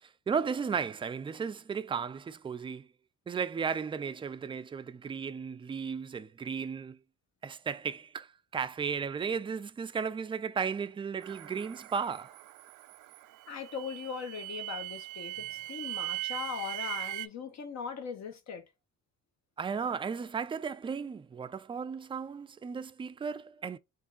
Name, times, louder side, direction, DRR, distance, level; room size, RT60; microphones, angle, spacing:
voice 1, 0.0-2.9 3.3-7.0 7.4-12.4 19.6-23.8, right 6 dB, 15° right, 0.3 m, -35 dB
sound 1, 11.2-17.3, right 19 dB, 80° right, 0.5 m, -40 dB
voice 2, 13.5-18.6, left 6 dB, 60° left, 0.9 m, -39 dB
3.6 x 2.6 x 3.8 m
cardioid pair, 90°, 30 cm